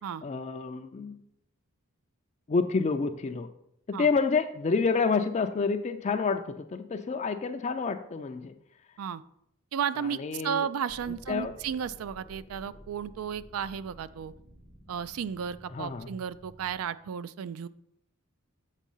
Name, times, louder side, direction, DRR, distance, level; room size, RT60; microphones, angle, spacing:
voice 1, 0.2-1.2 2.5-3.5 3.9-8.5 10.0-10.7 11.3-11.6 15.7-16.2, left 4 dB, 30° left, 8 dB, 0.3 m, -28 dB
voice 2, 9.7-14.3 14.9-17.7, right 8 dB, 80° right, 16 dB, 0.3 m, -33 dB
sound 1, 10.9-16.8, equal, 10° right, 0.6 m, -52 dB
7.4 x 4.5 x 5.4 m, 0.75 s
head